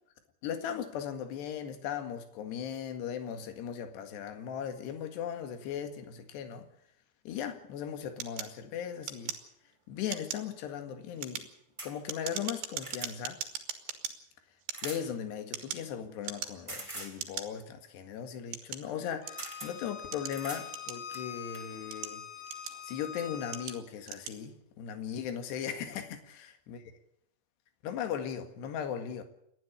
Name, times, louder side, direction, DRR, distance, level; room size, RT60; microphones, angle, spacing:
voice 1, 0.4-6.7 7.3-9.4 9.9-11.5 11.8-13.4 14.8-22.2 22.9-26.8 27.8-29.2, left 8 dB, 70° left, 3.9 m, -38 dB
sound 1, 8.2-9.7 10.1-10.5 11.1-14.1 14.6-15.9 16.2-16.8 17.2-17.5 18.1-19.6 20.1-21.3 21.8-23.0 23.5-23.8 24.0-24.4, right 9 dB, 70° right, 4.0 m, -39 dB
sound 2, 11.8-11.9 12.5-13.1 14.7-15.1 16.7-17.2 18.9-19.0 19.4-19.7 20.3-20.7 21.1-21.7 22.7-22.8 23.2-23.3, right 2 dB, 10° right, 2.9 m, -43 dB
Bowed string instrument, 19.2-23.7, left 8 dB, 85° left, 5.0 m, -44 dB
29.0 x 12.0 x 8.4 m
omnidirectional pair, 5.3 m